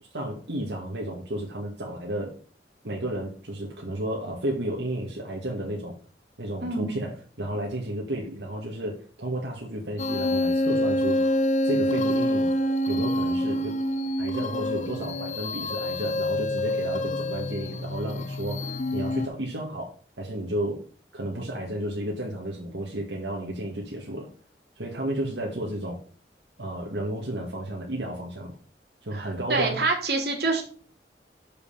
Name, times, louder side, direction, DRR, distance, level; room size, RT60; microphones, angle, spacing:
voice 1, 0.1-2.4 2.8-6.0 6.4-11.2 11.6-12.5 12.9-13.8 14.2-20.9 21.1-24.3 24.8-26.0 26.6-28.6 29.0-29.9, right 1 dB, 80° right, -1 dB, 1.9 m, -32 dB
voice 2, 6.6-7.0 29.1-30.6, right 3 dB, 60° right, 2 dB, 2.7 m, -26 dB
sound 1, 10.0-19.3, left 1 dB, 40° left, 0.6 m, -26 dB
6.9 x 5.4 x 6.9 m, 0.41 s
head